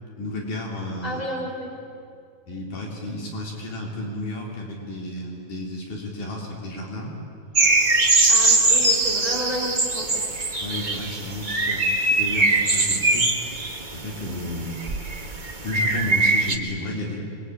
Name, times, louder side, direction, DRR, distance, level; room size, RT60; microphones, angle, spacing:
voice 1, 0.1-1.2 2.5-7.1 10.6-11.8 12.1-13.5 13.9-14.8 15.6-17.3, left 1 dB, 75° left, -1 dB, 5.0 m, -32 dB
voice 2, 1.0-1.7 8.3-10.1, equal, 10° left, -2 dB, 5.6 m, -31 dB
sound 1, 7.5-16.5, right 2 dB, 35° right, 0.7 m, -22 dB
25.5 x 22.5 x 8.8 m, 2.5 s
omnidirectional pair, 3.6 m